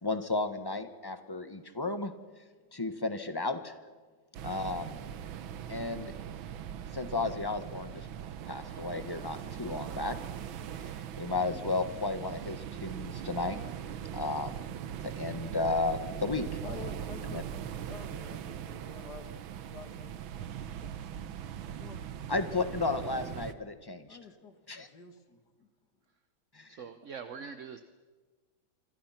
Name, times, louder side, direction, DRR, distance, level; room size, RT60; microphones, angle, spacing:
voice 1, 0.0-2.1 2.7-3.7 4.4-5.1 5.7-6.1 6.9-8.1 8.5-10.1 10.7-13.6 14.1-14.5 15.0-16.6 17.3-17.4 22.3-24.2 24.7-24.9 26.5-26.8, left 3 dB, 15° left, 9 dB, 1.2 m, -33 dB
sound 1, 4.3-23.5, right 9 dB, 85° right, 1.8 m, -40 dB
voice 2, 16.6-17.5 17.8-19.3 19.7-20.1 20.8-20.9 21.6-22.0 24.1-25.7, left 5 dB, 55° left, 6 dB, 2.7 m, -49 dB
voice 3, 26.7-27.8, right 6 dB, 50° right, 9 dB, 1.1 m, -43 dB
27.0 x 26.0 x 5.9 m, 1.4 s
omnidirectional pair, 2.1 m